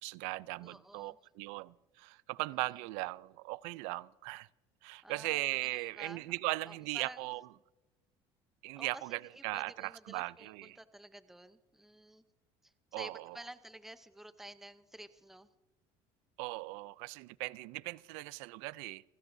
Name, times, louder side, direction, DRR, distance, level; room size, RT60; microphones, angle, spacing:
voice 1, 0.0-4.5 4.8-7.5 8.6-10.8 12.9-13.4 16.4-19.0, right 22 dB, 85° right, 0.4 m, -38 dB
voice 2, 0.6-1.2 5.0-5.4 5.7-6.3 6.7-7.3 8.8-12.2 12.6-15.5, right 1 dB, 5° right, 0.7 m, -51 dB
28.0 x 16.0 x 2.7 m
cardioid pair, 125°, 11 cm